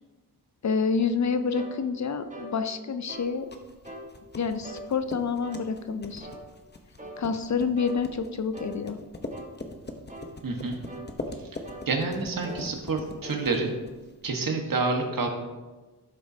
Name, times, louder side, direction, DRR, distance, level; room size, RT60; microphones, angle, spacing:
voice 1, 0.6-3.5 4.4-6.3 7.2-9.0, left 5 dB, 45° left, 9 dB, 0.6 m, -28 dB
sound 1, 1.5-1.8 2.3-2.5 3.1-3.3 3.8-4.1 4.6-4.9 5.4-5.7 6.2-6.4 7.0-7.2 7.8-8.0 8.5-8.8 9.3-9.5 10.1-10.3 10.9-11.1 11.6-11.9 12.4-12.7 13.2-13.4, right 1 dB, 20° right, 1.5 m, -41 dB
sound 2, 3.2-14.2, left 2 dB, 25° left, 0.9 m, -42 dB
voice 2, 10.4-10.8 11.9-13.7 14.2-15.3, right 3 dB, 55° right, 3 dB, 1.5 m, -28 dB
11.5 x 6.9 x 2.8 m, 1.2 s
cardioid pair, 75°, 40 cm